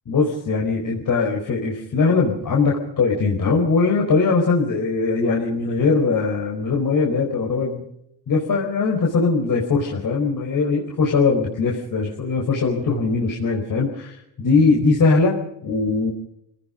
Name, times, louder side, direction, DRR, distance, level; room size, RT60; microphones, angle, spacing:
voice 1, 0.1-7.8 8.3-16.1, left 4 dB, 40° left, -1 dB, 4.8 m, -20 dB
27.5 x 18.5 x 5.3 m, 0.80 s
cardioid pair, 115°, 47 cm